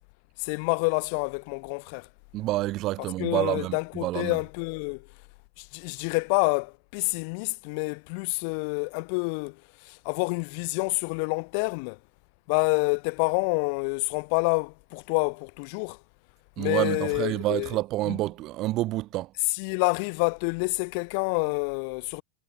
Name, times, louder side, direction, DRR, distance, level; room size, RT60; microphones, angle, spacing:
voice 1, 0.4-2.1 3.2-5.1 5.6-12.0 12.5-16.0 16.6-17.7 18.0-18.2 19.5-22.2, left 36 dB, 45° left, 1.3 m, -28 dB
voice 2, 2.3-4.4 16.6-19.3, right 17 dB, 35° right, 1.0 m, -28 dB
figure-of-eight pair, 90°, 0 cm